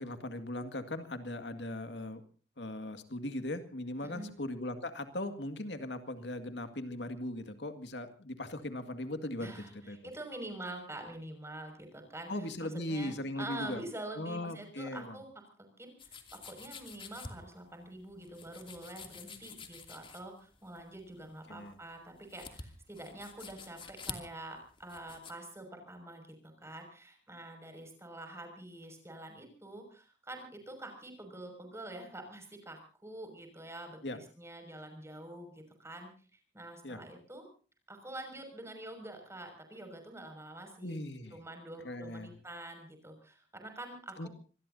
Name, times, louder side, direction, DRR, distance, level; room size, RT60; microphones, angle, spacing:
voice 1, 0.0-2.2 2.6-10.0 12.3-13.8 14.2-15.2 21.5-21.8 34.0-34.2 36.8-37.0 40.8-41.4 41.8-42.3 44.2-44.3, left 1 dB, 75° left, 8 dB, 2.0 m, -39 dB
voice 2, 4.0-4.3 9.4-12.3 12.6-15.3 15.6-36.1 36.5-37.4 37.9-41.0 41.3-44.3, right 1 dB, 15° right, 5 dB, 6.1 m, -46 dB
sound 1, 16.0-25.3, left 5 dB, 30° left, 2.7 m, -48 dB
26.5 x 20.0 x 2.8 m, 0.38 s
head